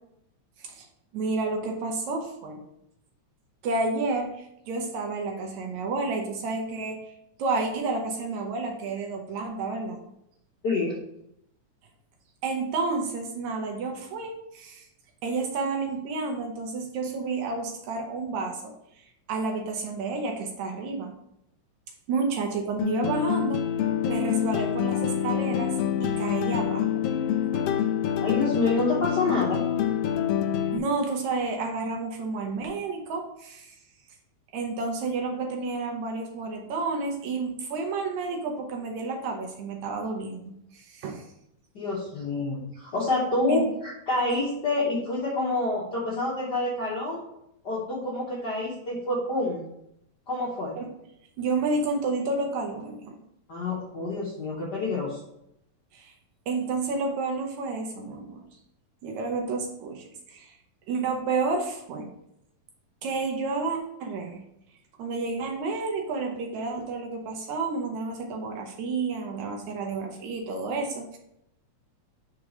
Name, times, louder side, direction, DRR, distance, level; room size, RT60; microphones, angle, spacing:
voice 1, 1.1-2.6 3.6-10.0 12.4-14.9 15.2-21.2 22.1-23.7 24.1-27.0 27.5-27.7 30.7-33.8 34.5-41.3 43.5-43.6 50.8-50.9 51.4-53.2 55.9-56.1 56.5-58.4 59.0-60.6 60.9-62.1 63.0-64.5 65.0-71.2, right 3 dB, 80° right, 2 dB, 2.1 m, -30 dB
voice 2, 10.6-11.0 28.2-29.6 41.7-47.2 47.6-49.6 50.3-50.8 53.5-55.2, left 2 dB, 50° left, -6 dB, 1.3 m, -28 dB
sound 1, 22.8-30.8, left 9 dB, 90° left, 1.3 m, -26 dB
4.8 x 4.7 x 5.1 m, 0.78 s
omnidirectional pair, 3.3 m